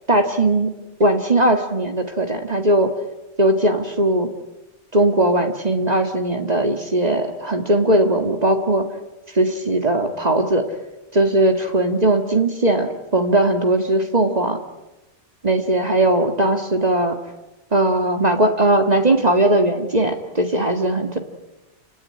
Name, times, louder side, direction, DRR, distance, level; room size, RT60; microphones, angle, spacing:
voice 1, 0.1-0.7 1.0-2.9 3.4-4.3 4.9-8.8 9.3-10.7 11.1-14.6 15.4-17.2 17.7-21.2, right 1 dB, 35° right, 5 dB, 2.0 m, -19 dB
29.0 x 17.0 x 9.8 m, 1.0 s
omnidirectional pair, 1.2 m